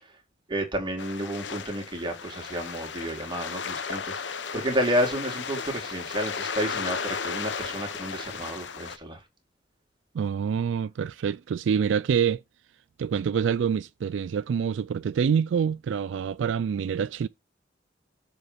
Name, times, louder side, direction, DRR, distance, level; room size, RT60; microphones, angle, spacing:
voice 1, 0.5-9.2, equal, 25° right, 2.3 m, -31 dB
sound 1, 1.0-9.0, left 6 dB, 70° left, 0.8 m, -35 dB
voice 2, 10.1-12.4 13.0-17.3, right 7 dB, 80° right, 0.3 m, -26 dB
6.9 x 3.8 x 5.1 m
head